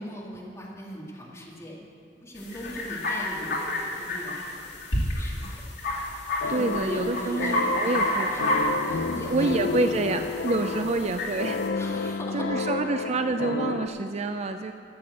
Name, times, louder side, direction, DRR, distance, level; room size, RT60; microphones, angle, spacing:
voice 1, 0.0-1.8 2.2-4.7 5.1-5.6 6.4-10.1 10.5-11.0 11.7-12.7, equal, 15° left, -4 dB, 2.0 m, -39 dB
sound 1, 2.4-11.7, left 1 dB, 90° left, 2.6 m, -30 dB
sound 2, 6.4-13.9, left 4 dB, 70° left, 0.5 m, -31 dB
voice 2, 6.5-8.6 9.2-14.7, right 3 dB, 40° right, 8 dB, 0.4 m, -28 dB
13.0 x 7.7 x 7.7 m, 2.6 s
head